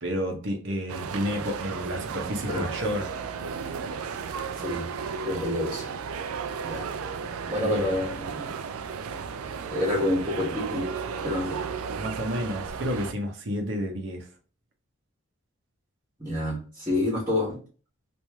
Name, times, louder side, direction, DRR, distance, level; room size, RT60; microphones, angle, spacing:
voice 1, 0.0-3.1 7.6-8.0 12.0-14.3, equal, 55° right, 3 dB, 0.8 m, -30 dB
sound 1, 0.9-13.1, right 6 dB, 80° right, 0.4 m, -34 dB
voice 2, 5.2-5.8 6.6-6.9 7.5-8.6 9.7-10.8 11.2-11.6 16.2-17.6, left 1 dB, 15° right, -9 dB, 1.1 m, -28 dB
3.1 x 2.6 x 3.3 m, 0.38 s
head